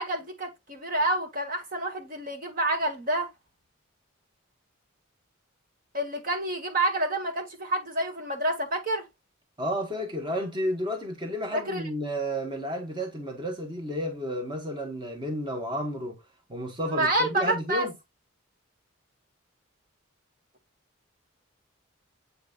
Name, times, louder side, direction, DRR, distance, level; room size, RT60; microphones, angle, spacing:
voice 1, 0.0-3.3 5.9-9.0 11.5-11.8 16.9-17.9, right 1 dB, 40° right, 1.5 m, -28 dB
voice 2, 9.6-16.2 16.5-17.9, equal, 20° right, 1.3 m, -31 dB
8.2 x 5.1 x 2.4 m
head